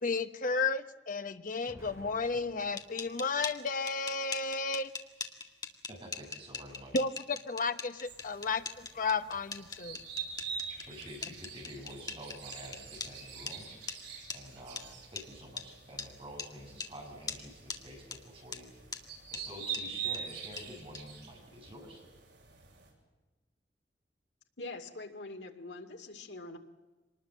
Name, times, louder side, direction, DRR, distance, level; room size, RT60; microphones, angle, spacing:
voice 1, 0.0-4.9 6.9-10.0, left 4 dB, 50° left, 9 dB, 1.1 m, -33 dB
Explosion, 1.6-3.8, equal, 15° right, 4.2 m, -55 dB
sound 1, 2.6-13.1 13.5-13.6 13.9-14.0 14.3-14.4 14.8-14.9 15.2-15.3 15.6-15.7 16.0-16.1 16.4-16.5 16.8-16.9 17.3-17.4 17.7-17.8 18.1-18.2 18.5-18.6 18.9-19.0 19.3-19.4 19.7-19.8 20.1-20.2 20.6-20.7 20.9-21.0, left 5 dB, 25° left, 2.0 m, -40 dB
voice 2, 5.9-7.0 8.3-8.4 10.9-13.6 14.3-18.7 19.3-22.0, equal, 30° right, 1 dB, 6.9 m, -48 dB
sound 2, 8.0-22.9, right 7 dB, 80° right, 7.8 m, -45 dB
voice 3, 24.6-26.6, left 2 dB, 85° left, 5 dB, 2.4 m, -44 dB
25.5 x 20.0 x 7.6 m, 1.2 s
head